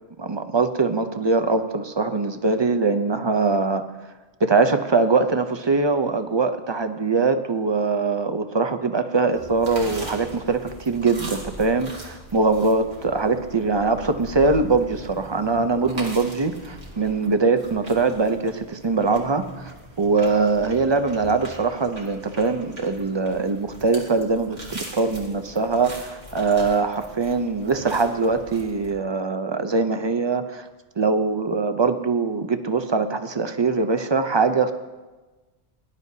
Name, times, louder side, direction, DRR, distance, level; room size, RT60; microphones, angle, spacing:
voice 1, 0.2-3.9 4.4-30.7 31.0-34.7, right 4 dB, 35° right, 9 dB, 0.5 m, -22 dB
sound 1, 9.3-28.9, right 1 dB, 80° right, 2.3 m, -40 dB
18.5 x 11.0 x 2.8 m, 1.2 s
omnidirectional pair, 1.1 m